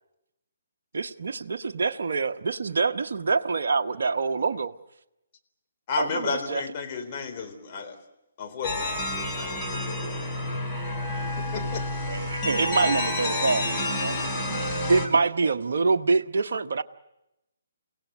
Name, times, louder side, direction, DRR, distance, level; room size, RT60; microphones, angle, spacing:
voice 1, 0.9-4.7 6.0-6.6 12.6-12.9 14.9-16.8, right 4 dB, 65° right, 0.9 m, -25 dB
voice 2, 5.9-8.0 8.4-10.2 11.5-11.9, left 5 dB, 35° left, 3.9 m, -33 dB
sound 1, 8.6-15.1, left 1 dB, 15° left, 4.6 m, -29 dB
voice 3, 12.1-14.6 15.1-15.5, right 3 dB, 80° right, 1.2 m, -30 dB
29.5 x 17.0 x 9.3 m
figure-of-eight pair, 145°, 0 cm